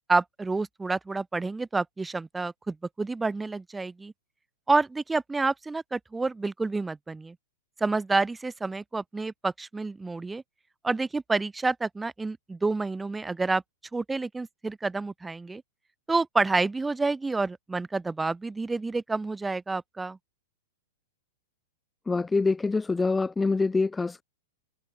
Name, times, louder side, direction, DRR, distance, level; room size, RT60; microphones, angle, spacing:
voice 1, 0.1-4.1 4.7-7.3 7.8-10.4 10.8-13.6 13.9-15.6 16.1-20.2, right 3 dB, 10° right, 1.0 m, -28 dB
voice 2, 22.1-24.2, left 3 dB, 10° left, 0.3 m, -25 dB
hypercardioid pair, 135°, 0 cm